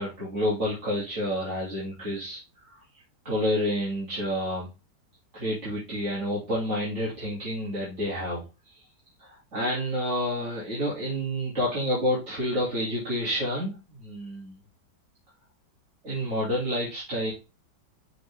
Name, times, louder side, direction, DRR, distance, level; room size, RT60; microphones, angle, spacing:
voice 1, 0.0-2.4 2.7-2.8 3.2-4.7 5.3-8.7 9.2-14.6 16.0-17.3, equal, 40° right, -8 dB, 2.7 m, -29 dB
6.2 x 4.6 x 3.5 m, 0.28 s
omnidirectional pair, 1.9 m